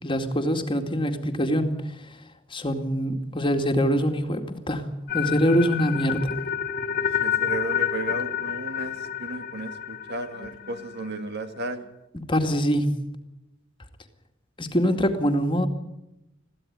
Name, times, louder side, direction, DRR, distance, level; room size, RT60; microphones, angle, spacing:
voice 1, 0.0-1.7 2.5-4.9 5.1-6.3 12.3-12.9 14.6-15.7, equal, 25° left, 5 dB, 2.2 m, -24 dB
sound 1, 5.1-11.2, left 9 dB, 45° left, 1.3 m, -29 dB
voice 2, 6.9-11.9, right 2 dB, 55° right, 8 dB, 2.0 m, -34 dB
22.0 x 15.5 x 9.5 m, 0.89 s
head